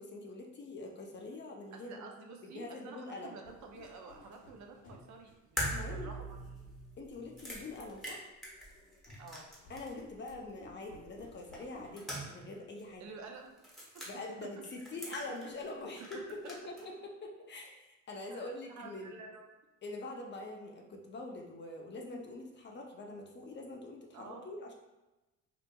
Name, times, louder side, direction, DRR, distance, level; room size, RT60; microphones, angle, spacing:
voice 1, 0.0-2.1 2.4-3.4 5.7-6.2 7.0-8.3 9.7-13.0 14.1-19.1 19.8-24.7, left 2 dB, 30° left, 1 dB, 0.5 m, -44 dB
voice 2, 1.7-6.6 9.2-9.5 13.0-13.6 13.9-14.1 14.4-14.8 15.2-15.3 16.0-16.2 18.3-19.4 24.1-24.5, right 4 dB, 55° right, 2 dB, 0.5 m, -50 dB
sound 1, 3.4-6.0 6.7-6.8 9.1-12.0, left 2 dB, 55° left, 1.0 m, -56 dB
sound 2, 5.6-10.0 10.3-10.4 11.5-12.5 12.8-12.9 13.6-14.1 14.6-15.7 16.0-16.9, equal, ahead, 0.9 m, -42 dB
2.8 x 2.4 x 2.2 m, 1.0 s
supercardioid pair, 75°, 35 cm